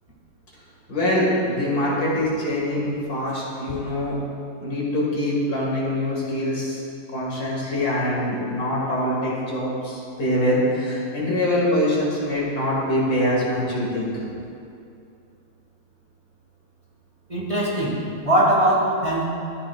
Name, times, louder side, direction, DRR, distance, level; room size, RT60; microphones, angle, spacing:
voice 1, 0.9-4.2 4.6-6.8 7.1-14.1, left 1 dB, 55° left, -5 dB, 2.4 m, -24 dB
voice 2, 17.3-19.3, right 1 dB, 20° right, -5 dB, 1.3 m, -21 dB
13.5 x 8.6 x 2.4 m, 2.6 s
omnidirectional pair, 2.0 m